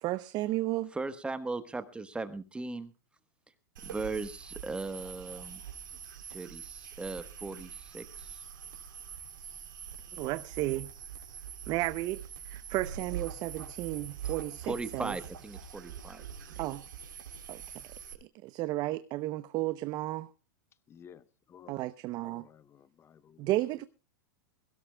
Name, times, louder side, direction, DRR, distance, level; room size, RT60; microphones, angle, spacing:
voice 1, 0.0-0.9 10.2-10.9 11.7-15.1 16.6-16.8 17.5-17.8 18.4-20.3 21.7-22.5 23.4-23.8, right 17 dB, 40° right, 0.7 m, -33 dB
voice 2, 0.9-2.9 3.8-5.6 6.3-8.4 14.6-16.2, right 3 dB, 10° right, 1.2 m, -38 dB
sound 1, 3.8-18.1, right 8 dB, 80° right, 3.3 m, -44 dB
voice 3, 20.9-21.8 22.2-23.5 23.8-23.9, left 8 dB, 25° left, 0.9 m, -55 dB
22.0 x 16.5 x 2.2 m
hypercardioid pair, 120°, 11 cm